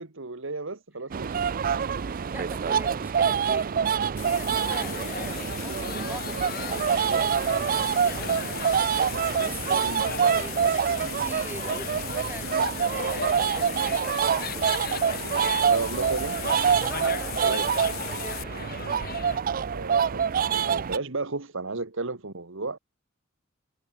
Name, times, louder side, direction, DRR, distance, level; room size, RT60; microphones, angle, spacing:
voice 1, 0.0-1.4 9.8-10.1 15.7-16.4 17.4-17.7 19.7-22.8, right 3 dB, 65° right, 1.7 m, -33 dB
sound 1, 1.1-21.0, right 7 dB, 45° right, 0.4 m, -26 dB
voice 2, 2.0-14.9 15.7-15.8 16.8-18.7 19.0-19.2, right 1 dB, 10° right, 7.3 m, -43 dB
sound 2, 4.2-18.4, left 15 dB, 75° left, 3.3 m, -39 dB
sound 3, 4.5-19.4, left 4 dB, 45° left, 5.1 m, -38 dB
head